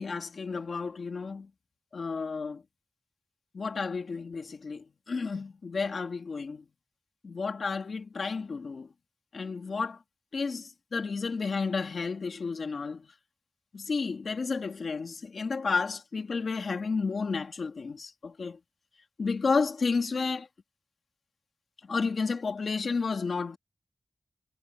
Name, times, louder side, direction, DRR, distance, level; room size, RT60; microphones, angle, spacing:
voice 1, 0.0-1.5 1.9-2.6 3.5-6.6 7.2-8.9 9.3-10.0 10.3-13.1 13.7-18.6 19.2-20.5 21.8-23.6, left 4 dB, 85° left, 2.7 m, -31 dB
wide cardioid pair, 65°, 0 cm